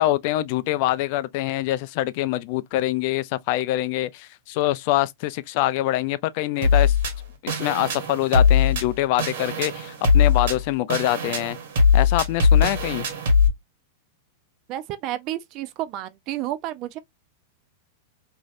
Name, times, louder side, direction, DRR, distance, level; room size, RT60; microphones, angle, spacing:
voice 1, 0.0-7.0 7.4-11.6 11.9-13.1, left 15 dB, 50° left, 0.3 m, -24 dB
sound 1, 6.6-13.5, left 5 dB, 65° right, 1.3 m, -20 dB
voice 2, 14.7-17.0, right 13 dB, 40° right, 0.4 m, -31 dB
3.0 x 2.6 x 2.4 m
supercardioid pair, 140°, 0 cm